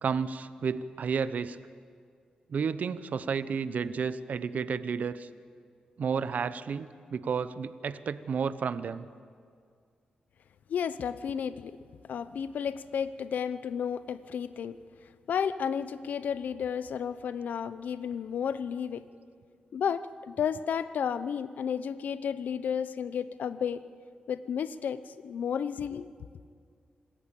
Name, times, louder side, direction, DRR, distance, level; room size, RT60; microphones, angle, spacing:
voice 1, 0.0-1.6 2.5-5.3 6.0-9.1, right 6 dB, 65° right, 14 dB, 0.8 m, -31 dB
voice 2, 10.7-11.8 12.1-14.8 15.3-19.0 19.7-23.8 24.3-26.1, left 7 dB, 80° left, 14 dB, 0.8 m, -32 dB
25.5 x 14.0 x 8.6 m, 2.1 s
cardioid pair, 75°, 3 cm